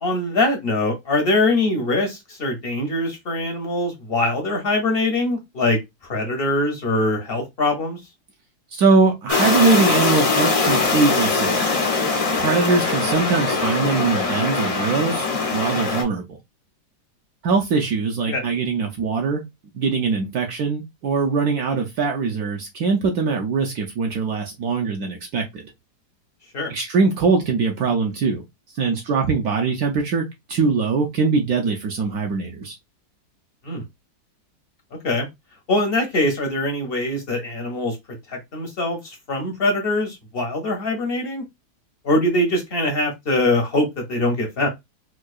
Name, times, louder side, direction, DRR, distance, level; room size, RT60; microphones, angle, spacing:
voice 1, 0.0-8.0 18.3-18.4 26.5-26.7 33.6-33.8 35.0-35.3 35.7-38.0 38.3-41.4 42.0-44.7, left 2 dB, 50° left, 0.7 m, -23 dB
voice 2, 8.7-11.6 12.4-16.3 17.4-19.4 19.7-25.6 26.7-28.4 28.7-32.8, right 4 dB, 70° right, 1.0 m, -22 dB
sound 1, 9.3-16.0, left 4 dB, 70° left, 0.3 m, -21 dB
4.5 x 2.3 x 2.3 m
omnidirectional pair, 1.9 m